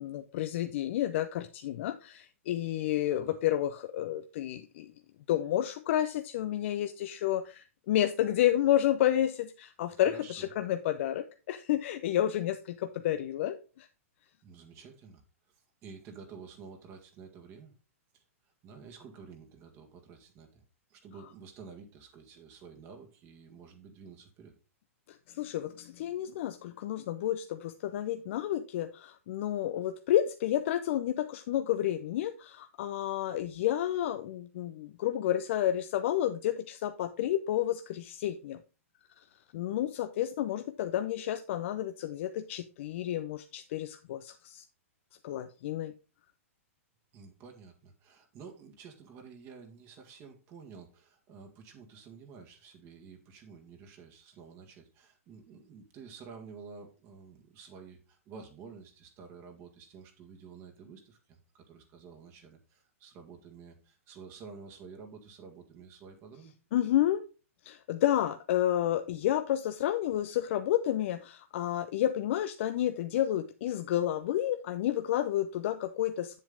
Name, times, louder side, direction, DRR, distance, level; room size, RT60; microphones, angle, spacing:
voice 1, 0.0-4.9 5.3-13.9 25.3-38.6 39.2-39.3 39.5-44.6 45.2-45.9 66.7-67.2 67.6-76.4, left 12 dB, 55° left, 9 dB, 0.6 m, -30 dB
voice 2, 9.9-10.5 14.4-15.2 15.5-17.7 18.1-20.6 20.9-24.5 47.1-66.5, right 5 dB, 35° right, 3 dB, 1.9 m, -50 dB
7.5 x 7.2 x 3.8 m, 0.33 s
hypercardioid pair, 120°, 8 cm